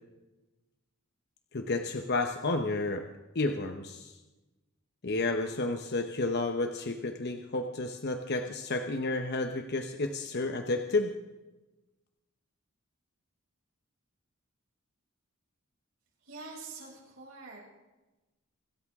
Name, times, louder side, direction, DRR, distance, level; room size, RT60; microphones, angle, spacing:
voice 1, 1.5-3.0 3.3-4.1 5.0-11.1, left 2 dB, 50° left, 6 dB, 0.9 m, -31 dB
voice 2, 16.2-17.6, right 3 dB, 70° right, -4 dB, 6.8 m, -45 dB
26.0 x 13.0 x 3.6 m, 1.1 s
head